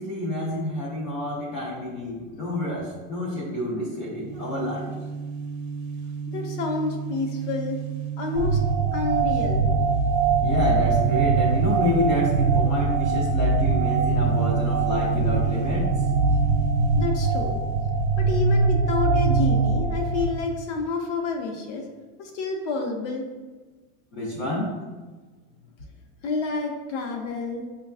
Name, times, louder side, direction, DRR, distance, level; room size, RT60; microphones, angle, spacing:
voice 1, 0.0-4.9 10.4-15.9 24.1-24.7, left 2 dB, 25° left, -6 dB, 0.3 m, -28 dB
sound 1, 4.1-18.7, right 11 dB, 85° right, 0.6 m, -31 dB
voice 2, 6.3-7.8 8.2-8.6 8.9-10.6 11.3-11.6 17.0-17.6 18.2-21.9 22.2-23.3 26.2-27.6, left 4 dB, 65° left, 2 dB, 0.7 m, -29 dB
sound 2, 8.4-20.2, right 4 dB, 35° right, 0.5 m, -22 dB
5.0 x 2.2 x 2.4 m, 1.3 s
supercardioid pair, 170°, 40 cm